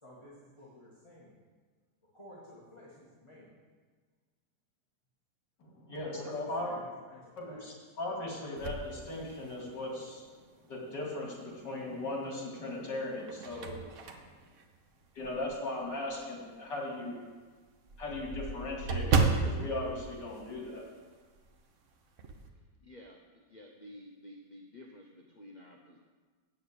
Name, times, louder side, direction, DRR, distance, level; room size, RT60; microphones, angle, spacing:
voice 1, 0.0-1.4 2.1-3.5 6.1-7.7, equal, 15° left, -6 dB, 1.8 m, -53 dB
voice 2, 5.6-6.7 7.4-10.3 10.6-13.9 15.1-17.1 18.0-20.8, left 2 dB, 70° left, -2 dB, 3.1 m, -38 dB
sound 1, 8.6-9.9 10.4-10.5 12.0-12.5 13.0-15.6 16.1-16.2 16.6-16.7 17.0-17.1 17.3-21.1 21.3-21.6 21.9-22.5, right 4 dB, 50° right, 1.0 m, -33 dB
voice 3, 22.8-26.0, left 1 dB, 40° left, 0 dB, 0.6 m, -52 dB
7.9 x 7.1 x 8.3 m, 1.5 s
omnidirectional pair, 2.0 m